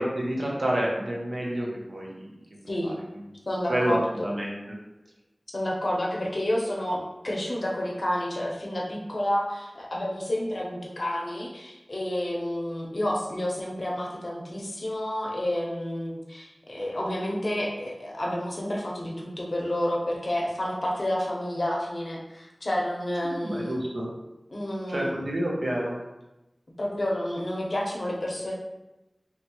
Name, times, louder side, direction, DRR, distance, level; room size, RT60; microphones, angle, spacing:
voice 1, 0.0-2.3 2.8-2.9 3.7-4.6 23.4-24.1 24.9-26.0, right 1 dB, 70° right, -3 dB, 0.6 m, -28 dB
voice 2, 2.7-3.0 3.5-4.3 5.5-7.0 7.2-23.8 24.5-25.1 26.8-28.5, left 1 dB, 65° left, -2 dB, 0.6 m, -30 dB
2.8 x 2.2 x 2.9 m, 0.98 s
wide cardioid pair, 50°, 0 cm